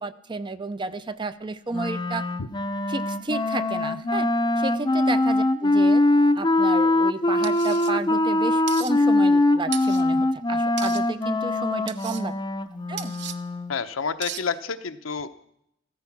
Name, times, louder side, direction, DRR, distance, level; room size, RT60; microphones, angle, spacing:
voice 1, 0.0-2.2 2.9-4.3 4.6-6.0 6.4-12.3 12.9-13.1, right 3 dB, 25° right, 13 dB, 0.5 m, -32 dB
Wind instrument woodwind instrument, 1.7-13.8, left 2 dB, 20° left, 0.6 m, -22 dB
sound 1, 7.4-7.9 8.7-8.9 9.7-10.0 10.8-11.0 11.9-12.2 13.0-13.4 14.2-14.4, right 11 dB, 55° right, 0.7 m, -35 dB
voice 2, 13.7-15.3, left 5 dB, 75° left, 9 dB, 0.8 m, -29 dB
14.5 x 13.5 x 6.0 m, 0.78 s
head